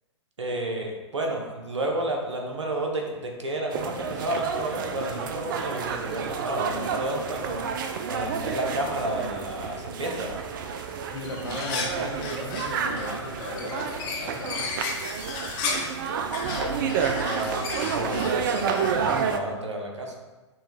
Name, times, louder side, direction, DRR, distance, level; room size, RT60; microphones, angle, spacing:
voice 1, 0.4-7.6 8.1-10.4 16.5-20.1, right 1 dB, 75° right, 1 dB, 0.8 m, -31 dB
sound 1, 3.7-19.4, right 6 dB, 45° right, 0.4 m, -30 dB
sound 2, 10.8-10.9 11.1-16.0 16.3-19.2, left 4 dB, 30° left, 0.6 m, -34 dB
voice 2, 11.1-14.7, left 2 dB, 60° left, 1 dB, 0.8 m, -36 dB
5.9 x 2.3 x 3.0 m, 1.2 s
figure-of-eight pair, 110°, 15 cm